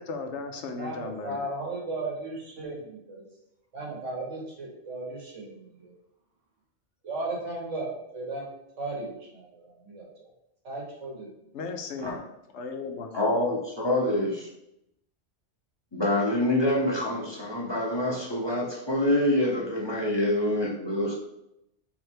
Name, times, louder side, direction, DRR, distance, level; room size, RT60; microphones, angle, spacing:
voice 1, 0.0-1.4 11.5-12.1 12.5-13.1, left 4 dB, 75° left, 5 dB, 0.9 m, -35 dB
voice 2, 0.7-3.2 3.7-5.9 7.0-8.5 8.8-10.3 10.6-11.5, right 2 dB, 85° right, -2 dB, 1.7 m, -36 dB
voice 3, 13.1-14.5 15.9-21.1, left 1 dB, 25° left, -4 dB, 0.8 m, -26 dB
3.6 x 3.2 x 4.5 m, 0.83 s
omnidirectional pair, 1.2 m